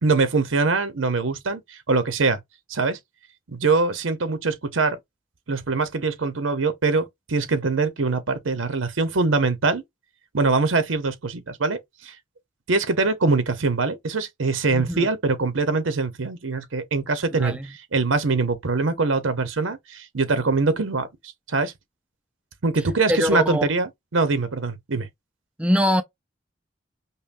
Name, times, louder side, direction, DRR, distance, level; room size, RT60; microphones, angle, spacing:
voice 1, 0.0-2.4 2.7-3.0 3.5-5.0 5.5-9.8 10.3-12.2 12.7-21.7 22.6-25.1, right 3 dB, 85° right, 0.8 m, -23 dB
voice 2, 14.7-15.1 17.4-17.7 23.1-23.7 25.6-26.0, equal, 5° right, 0.4 m, -23 dB
5.5 x 2.1 x 2.5 m
head